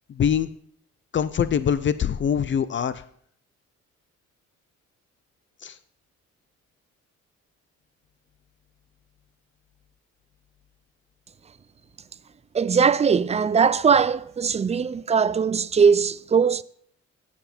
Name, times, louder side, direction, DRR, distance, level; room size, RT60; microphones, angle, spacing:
voice 1, 0.1-0.5 1.1-3.0 5.6-5.8, left 8 dB, 40° left, 0.5 m, -23 dB
voice 2, 12.5-16.6, right 6 dB, 25° right, 0.3 m, -20 dB
16.0 x 6.0 x 4.4 m
cardioid pair, 90°, 30 cm